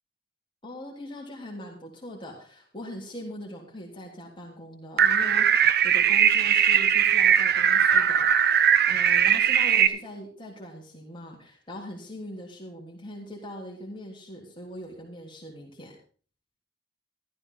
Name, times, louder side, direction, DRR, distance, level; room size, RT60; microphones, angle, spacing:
voice 1, 0.6-8.3 8.9-16.0, left 1 dB, 25° left, -2 dB, 3.3 m, -41 dB
sound 1, 5.0-9.9, right 8 dB, 55° right, 0.8 m, -20 dB
14.0 x 13.5 x 4.0 m, 0.40 s
head